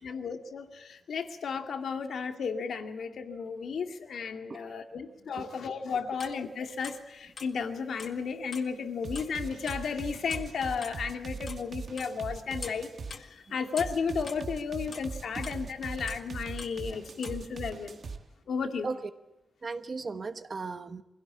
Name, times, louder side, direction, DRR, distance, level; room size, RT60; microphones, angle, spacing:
voice 1, 0.0-12.9 13.5-18.0 18.5-18.9, left 5 dB, 85° left, 6 dB, 2.2 m, -34 dB
sound 1, 6.2-6.4 6.8-7.1 7.4-8.2 8.5-8.7 9.1-9.3 9.7-10.5 10.8-11.0 11.2-14.5 14.9-15.7 16.1-17.5, left 5 dB, 50° left, 1.9 m, -44 dB
sound 2, 9.0-13.2 13.8-18.2, right 4 dB, 55° right, 1.4 m, -40 dB
voice 2, 19.6-21.0, right 4 dB, 35° right, 10 dB, 1.1 m, -36 dB
24.5 x 17.0 x 8.6 m, 1.0 s
wide cardioid pair, 170°, 0 cm